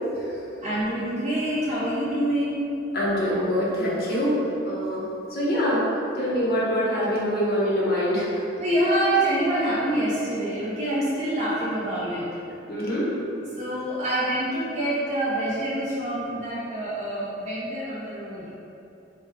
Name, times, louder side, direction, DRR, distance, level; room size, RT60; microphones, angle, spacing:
voice 1, 0.6-2.7 8.6-12.3 13.6-18.5, right 1 dB, 40° right, -9 dB, 0.5 m, -26 dB
voice 2, 2.9-4.4 4.7-5.8 6.1-8.5 12.7-13.1, equal, 55° left, -7 dB, 0.8 m, -24 dB
3.3 x 2.1 x 3.5 m, 2.7 s
head